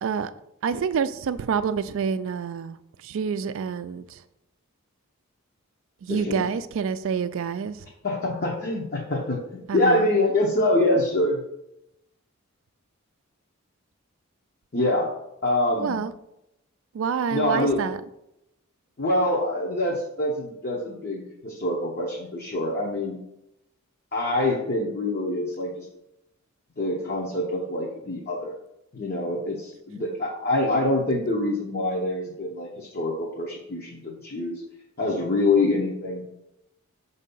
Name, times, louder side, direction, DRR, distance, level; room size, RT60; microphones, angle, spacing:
voice 1, 0.0-0.3 0.6-4.2 6.0-7.9 9.7-10.1 15.8-16.1 16.9-18.0 30.0-30.1, right 6 dB, 60° right, 14 dB, 0.3 m, -27 dB
voice 2, 6.1-6.4 8.0-11.4 14.7-15.1 15.4-16.0 17.3-17.8 19.0-23.2 24.1-25.9 26.8-28.6 28.9-34.6 35.0-36.2, left 2 dB, 45° left, -3 dB, 0.8 m, -25 dB
6.4 x 2.7 x 5.3 m, 0.85 s
head